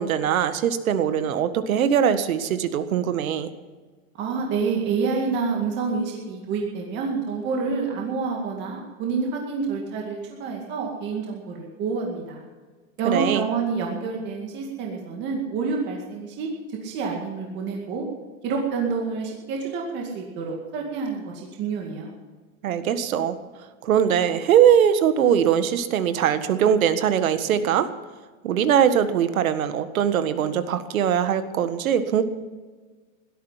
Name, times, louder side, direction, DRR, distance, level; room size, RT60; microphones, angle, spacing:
voice 1, 0.0-3.5 13.0-13.5 22.6-23.4 23.8-27.9 28.4-32.2, right 9 dB, 80° right, 10 dB, 1.7 m, -21 dB
voice 2, 4.2-12.5 13.0-18.1 18.4-22.2, right 5 dB, 25° right, 0 dB, 2.2 m, -28 dB
17.0 x 12.5 x 5.7 m, 1.4 s
supercardioid pair, 165°, 41 cm